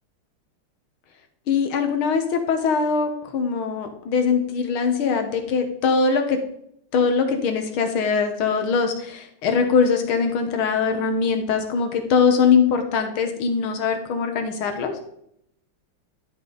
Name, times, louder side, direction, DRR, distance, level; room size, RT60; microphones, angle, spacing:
voice 1, 1.5-6.4 6.9-14.9, left 5 dB, 75° left, 5 dB, 1.9 m, -22 dB
11.5 x 5.5 x 3.9 m, 0.73 s
omnidirectional pair, 2.4 m